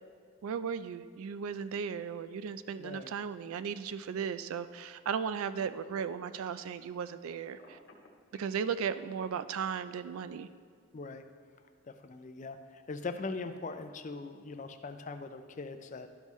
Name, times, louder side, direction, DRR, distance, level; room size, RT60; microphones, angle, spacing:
voice 1, 0.4-7.8 8.3-10.5, right 7 dB, 75° right, 13 dB, 0.3 m, -36 dB
voice 2, 2.8-3.1 10.9-11.2 11.9-16.1, left 3 dB, 35° left, 8 dB, 0.4 m, -41 dB
Telephone, 7.5-8.6, left 1 dB, 50° left, 1.0 m, -55 dB
12.0 x 5.4 x 3.1 m, 2.1 s
head